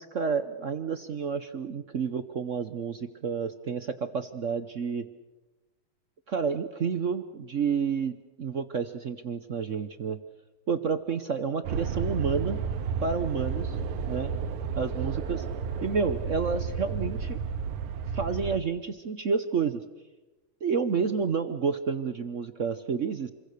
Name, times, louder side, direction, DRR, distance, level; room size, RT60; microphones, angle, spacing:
voice 1, 0.0-5.1 6.3-10.2 10.7-12.6 13.0-13.8 14.1-14.3 14.8-15.4 15.8-17.4 18.1-19.8 20.6-23.3, right 5 dB, 55° right, 10 dB, 0.9 m, -30 dB
sound 1, 11.6-18.6, right 6 dB, 85° right, 2.0 m, -32 dB
28.0 x 22.5 x 6.7 m, 1.1 s
omnidirectional pair, 2.4 m